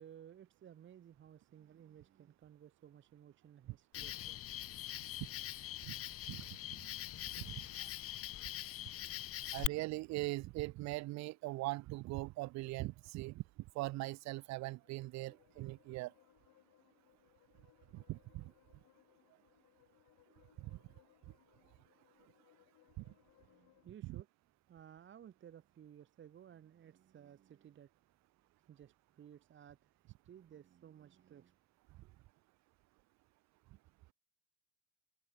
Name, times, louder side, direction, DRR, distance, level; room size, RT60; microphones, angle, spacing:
voice 1, 0.0-4.4 23.3-24.3 24.7-27.9 28.7-31.6, right 9 dB, 35° right, 1.0 m, -57 dB
Cricket, 3.9-9.7, left 13 dB, 40° left, 0.7 m, -43 dB
voice 2, 9.5-13.4 13.8-16.1 17.9-18.5 20.6-20.8 23.0-23.1 24.0-24.2, right 20 dB, 50° right, 0.5 m, -41 dB
sound 1, 14.5-23.9, left 16 dB, 60° left, 5.2 m, -70 dB
supercardioid pair, 110°, 35 cm